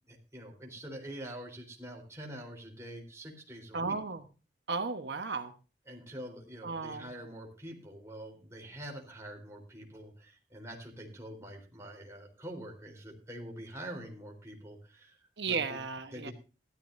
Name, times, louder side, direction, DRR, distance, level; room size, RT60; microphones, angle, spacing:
voice 1, 0.1-4.0 5.9-15.8 16.1-16.3, right 1 dB, 15° right, 1 dB, 3.7 m, -45 dB
voice 2, 3.7-4.2 4.7-5.5 6.6-7.1 15.4-16.3, right 4 dB, 75° right, 7 dB, 1.1 m, -34 dB
16.0 x 13.0 x 2.6 m, 0.34 s
head